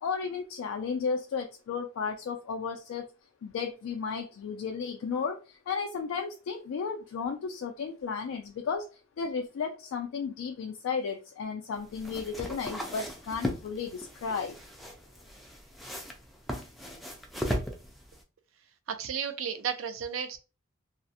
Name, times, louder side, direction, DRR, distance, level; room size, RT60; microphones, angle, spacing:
voice 1, 0.0-3.1 3.4-8.9 9.2-14.5, left 5 dB, 85° left, 0.3 m, -34 dB
sound 1, 11.7-18.2, equal, ahead, 0.3 m, -37 dB
voice 2, 18.9-20.4, right 7 dB, 85° right, 0.4 m, -33 dB
2.4 x 2.0 x 2.7 m
head